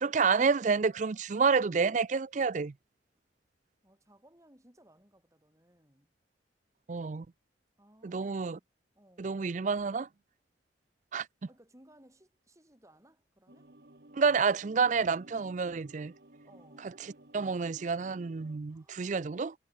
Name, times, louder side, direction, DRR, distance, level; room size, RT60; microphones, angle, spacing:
voice 1, 0.0-2.7 6.9-7.3 8.0-8.6 9.2-10.1 11.1-11.3 14.1-16.1 17.3-19.5, right 5 dB, 40° right, 0.4 m, -29 dB
voice 2, 3.8-6.1 7.8-8.7 8.9-9.4 11.5-13.7 14.4-14.6 16.4-17.0 18.7-19.1, right 1 dB, 15° right, 4.6 m, -62 dB
sound 1, 13.5-18.6, right 1 dB, 55° right, 2.0 m, -56 dB
head